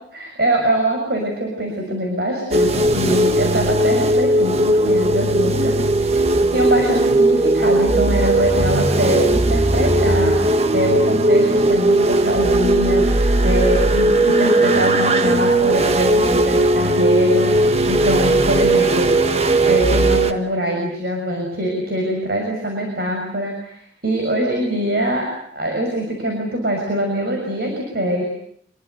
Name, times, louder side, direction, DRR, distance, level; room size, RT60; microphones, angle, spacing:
voice 1, 0.1-28.2, equal, 55° right, 1 dB, 6.5 m, -23 dB
sound 1, 2.5-20.3, right 1 dB, 35° right, 1.3 m, -17 dB
26.5 x 23.0 x 8.1 m, 0.64 s
head